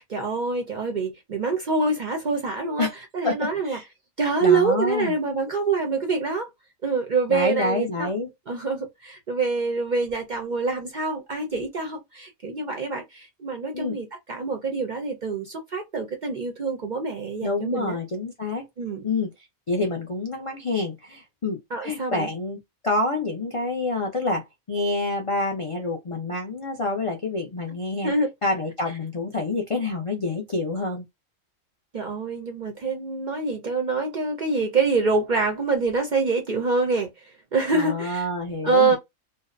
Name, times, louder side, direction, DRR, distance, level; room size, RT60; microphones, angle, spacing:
voice 1, 0.0-2.9 3.1-3.8 4.2-6.5 6.8-8.1 8.5-18.0 18.8-19.1 21.7-22.3 28.0-28.3 31.9-38.3 38.6-39.0, right 4 dB, 55° right, 0.5 m, -25 dB
voice 2, 3.2-3.8 4.4-5.1 7.3-8.3 13.7-14.0 17.4-18.7 19.0-19.3 19.7-22.6 22.8-28.1 28.4-31.1 37.7-39.0, left 2 dB, 55° left, 0.3 m, -27 dB
2.7 x 2.1 x 2.3 m
omnidirectional pair, 1.3 m